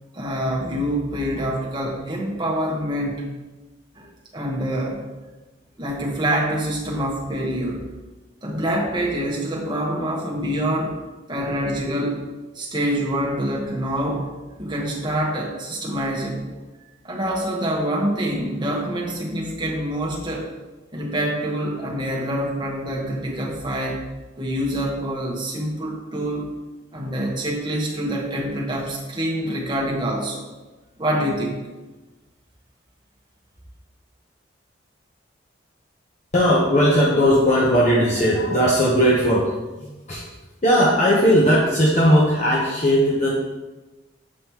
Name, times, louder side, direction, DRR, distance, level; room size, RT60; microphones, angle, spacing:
voice 1, 0.1-3.2 3.9-4.1 4.3-5.1 5.8-7.8 8.4-11.0 11.3-12.3 12.5-16.5 17.0-20.5 20.9-24.0 24.4-26.5 26.9-30.5 31.0-31.6, right 1 dB, 25° right, -3 dB, 1.2 m, -26 dB
voice 2, 36.3-40.2 40.6-43.3, equal, 40° left, -5 dB, 1.0 m, -18 dB
7.6 x 5.3 x 3.0 m, 1.2 s
head